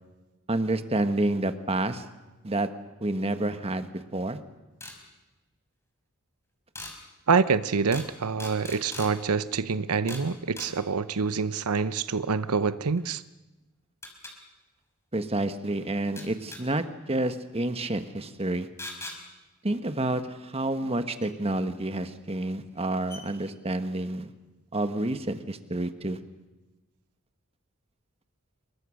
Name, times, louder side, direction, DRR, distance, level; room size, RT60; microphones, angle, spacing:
voice 1, 0.5-2.0 2.4-2.7 3.0-4.4 15.1-18.7 19.6-24.3 24.7-26.2, right 2 dB, 25° right, 1.4 m, -29 dB
sound 1, 4.8-5.0 6.7-6.9 7.9-8.1 8.4-9.1 10.1-10.3 10.6-10.7 13.0-13.1 14.0-14.3 16.2-16.6 18.8-19.2 21.2-21.3 22.3-22.4 22.7-22.8 23.1-23.2, left 2 dB, 10° left, 4.4 m, -40 dB
voice 2, 7.3-13.2, right 5 dB, 85° right, 0.8 m, -26 dB
27.5 x 23.0 x 6.5 m
head